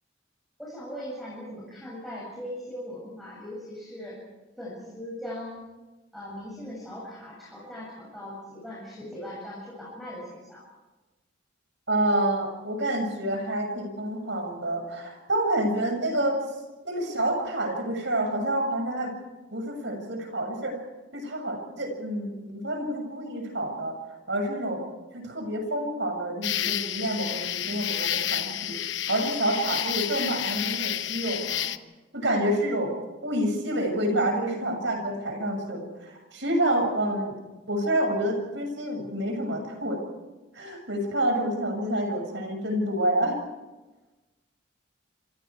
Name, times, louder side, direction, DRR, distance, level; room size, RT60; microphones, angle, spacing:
voice 1, 0.6-4.2 4.6-5.6 6.1-10.6 32.2-32.5, left 1 dB, ahead, -7 dB, 7.4 m, -39 dB
voice 2, 11.9-16.4 16.8-19.1 19.5-20.8 21.1-24.0 24.3-24.8 25.1-28.8 29.1-31.7 32.1-32.9 33.2-37.4 37.7-40.0 40.5-43.4, right 1 dB, 65° right, 4 dB, 6.8 m, -28 dB
sound 1, 26.4-31.8, left 11 dB, 65° left, 1.0 m, -30 dB
27.0 x 26.5 x 4.8 m, 1.1 s
head